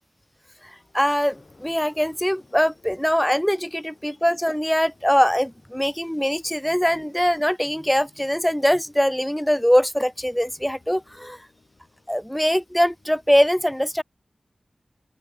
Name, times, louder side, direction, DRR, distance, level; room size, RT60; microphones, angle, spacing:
sound 1, 0.6-13.4, left 4 dB, 85° left, 4.1 m, -65 dB
voice 1, 0.6-11.5 12.1-14.0, equal, 5° left, 0.4 m, -22 dB
sound 2, 1.3-12.2, left 3 dB, 60° left, 2.1 m, -59 dB
open air
cardioid pair, 50°, 0 cm